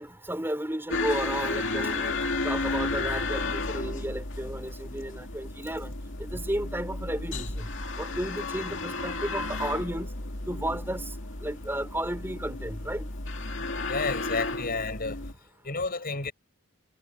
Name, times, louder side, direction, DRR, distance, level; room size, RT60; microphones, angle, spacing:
voice 1, 0.0-5.9 6.2-7.7 8.0-10.1 10.5-11.1 11.4-13.1, right 1 dB, 10° right, 5.4 m, -33 dB
sound 1, 0.9-15.3, left 3 dB, 60° left, 2.5 m, -33 dB
voice 2, 13.9-15.3 15.6-16.3, left 3 dB, 45° left, 7.2 m, -31 dB
head